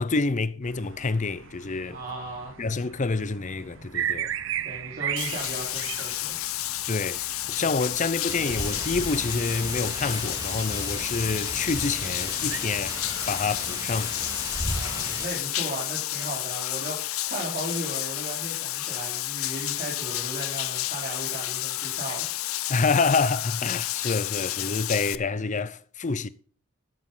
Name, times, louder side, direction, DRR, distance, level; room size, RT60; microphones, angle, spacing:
voice 1, 0.0-2.0 2.6-4.3 6.9-13.0 13.3-14.2 22.7-26.3, left 4 dB, 35° left, 0.6 m, -27 dB
sound 1, 0.6-12.6, right 10 dB, 65° right, 0.7 m, -38 dB
voice 2, 1.9-2.6 4.6-6.4 14.7-22.7, right 1 dB, 45° right, 4.0 m, -36 dB
Bathtub (filling or washing), 5.2-25.2, left 16 dB, 80° left, 0.6 m, -31 dB
sound 2, 8.3-15.3, right 1 dB, 20° right, 3.6 m, -35 dB
12.5 x 10.0 x 3.8 m
head